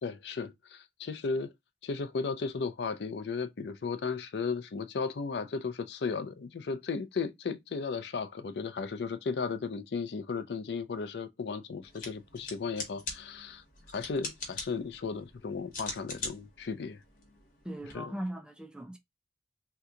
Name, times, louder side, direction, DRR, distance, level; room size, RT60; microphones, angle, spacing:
voice 1, 0.0-1.5 1.8-13.6 13.9-17.0 17.9-18.2, left 4 dB, 70° left, 0.5 m, -35 dB
sound 1, 11.8-17.9, left 3 dB, 55° left, 1.1 m, -43 dB
voice 2, 17.6-19.0, right 1 dB, 5° right, 0.3 m, -39 dB
2.8 x 2.2 x 3.6 m
head